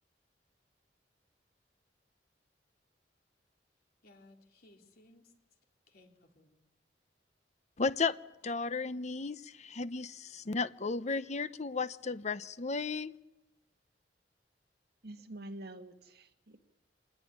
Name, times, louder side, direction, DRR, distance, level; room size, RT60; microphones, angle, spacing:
voice 1, 4.0-5.3 5.9-6.6, left 2 dB, 60° left, 3.5 m, -61 dB
voice 2, 7.8-8.2 8.4-13.1, left 4 dB, 40° left, 0.8 m, -34 dB
voice 3, 15.0-16.6, right 1 dB, 60° right, 1.9 m, -47 dB
25.5 x 19.0 x 9.8 m
head